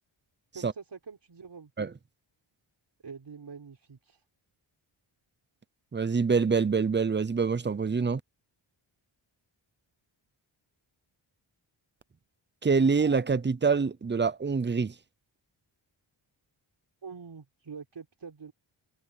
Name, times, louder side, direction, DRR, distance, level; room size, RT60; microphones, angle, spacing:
voice 1, 0.5-1.7 3.0-4.2 17.0-18.5, right 5 dB, 55° right, 4.3 m, -45 dB
voice 2, 5.9-8.2 12.6-14.9, right 5 dB, 25° right, 0.5 m, -25 dB
wide cardioid pair, 115°, 49 cm